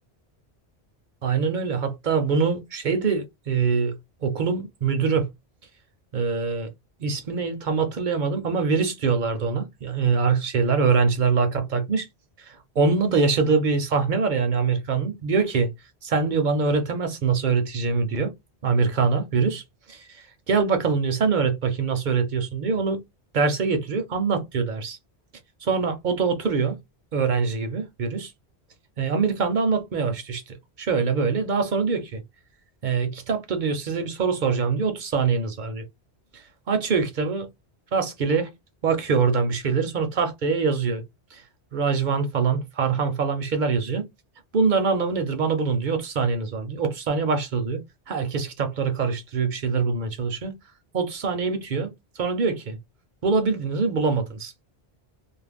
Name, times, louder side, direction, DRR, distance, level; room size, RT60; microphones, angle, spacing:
voice 1, 1.2-5.3 6.1-6.7 7.0-12.1 12.4-15.7 16.0-18.3 18.6-23.0 23.3-25.0 25.6-26.8 27.1-28.3 29.0-32.2 32.8-35.8 36.3-37.5 37.9-38.5 38.8-41.0 41.3-41.4 41.7-44.0 44.5-47.8 48.1-50.5 50.9-52.8 53.2-54.5, right 5 dB, 55° right, 0.6 m, -24 dB
2.4 x 2.1 x 3.3 m
omnidirectional pair, 1.1 m